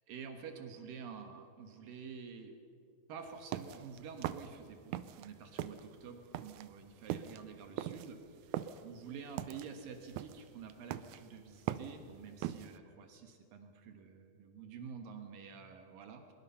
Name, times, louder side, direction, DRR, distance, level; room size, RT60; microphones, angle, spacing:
voice 1, 0.1-2.5 3.1-16.3, right 6 dB, 70° right, 5 dB, 3.0 m, -49 dB
sound 1, 3.3-5.3 5.5-12.8, right 12 dB, 85° right, 1.7 m, -41 dB
22.5 x 22.0 x 5.7 m, 2.5 s
omnidirectional pair, 4.3 m